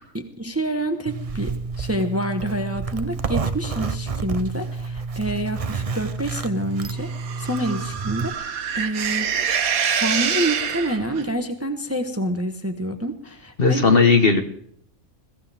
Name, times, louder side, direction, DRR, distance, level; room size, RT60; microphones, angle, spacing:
voice 1, 0.1-7.1 7.4-9.4 10.0-13.8, right 1 dB, 10° right, 6 dB, 1.1 m, -27 dB
Zipper (clothing), 1.1-8.3, right 4 dB, 35° right, 0.6 m, -29 dB
sound 1, 7.0-11.3, right 7 dB, 85° right, 1.5 m, -26 dB
voice 2, 13.6-14.4, left 4 dB, 40° left, 7 dB, 1.5 m, -16 dB
21.5 x 15.5 x 3.5 m, 0.66 s
omnidirectional pair, 1.5 m